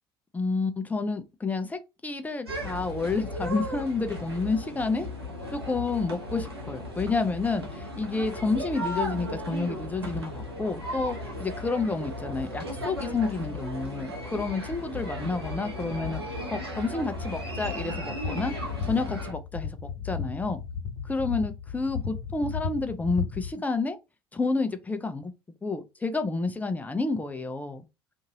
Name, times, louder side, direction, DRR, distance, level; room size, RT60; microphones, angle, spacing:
voice 1, 0.3-5.1 5.5-18.5 18.8-20.6 21.0-24.0 24.3-25.3 25.6-27.8, left 3 dB, 10° left, 0.6 m, -30 dB
sound 1, 2.5-19.3, left 1 dB, 90° right, 0.8 m, -35 dB
sound 2, 17.9-23.5, left 6 dB, 60° left, 1.2 m, -35 dB
2.7 x 2.6 x 2.9 m
figure-of-eight pair, 60°, 13 cm